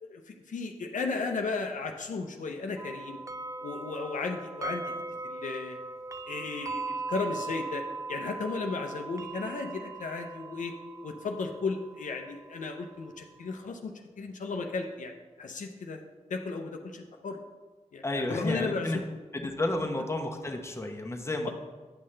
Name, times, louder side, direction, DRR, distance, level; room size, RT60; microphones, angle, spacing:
voice 1, 0.0-3.2 3.6-5.0 5.2-5.8 6.3-10.8 11.0-15.1 15.4-17.4 17.9-19.0, left 4 dB, 85° left, 3 dB, 0.6 m, -35 dB
sound 1, 2.8-13.3, right 3 dB, 25° right, 0.3 m, -39 dB
voice 2, 18.0-19.0 19.3-21.5, left 1 dB, 20° left, 2 dB, 0.9 m, -31 dB
8.8 x 5.6 x 3.2 m, 1.3 s
cardioid pair, 55°, 13 cm